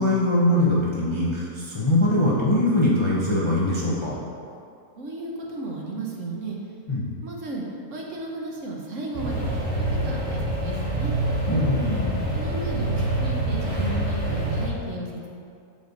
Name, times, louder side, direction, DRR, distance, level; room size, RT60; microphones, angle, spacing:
voice 1, 0.0-4.2 6.9-7.1 11.5-12.2, left 1 dB, 25° left, -7 dB, 0.7 m, -22 dB
voice 2, 5.0-6.6 7.2-7.6 7.9-9.5 9.9-11.1 12.3-15.3, right 2 dB, 60° right, -2 dB, 1.2 m, -34 dB
sound 1, 9.1-14.7, right 1 dB, 35° right, 1.4 m, -26 dB
6.8 x 5.1 x 3.9 m, 2.5 s
omnidirectional pair, 1.5 m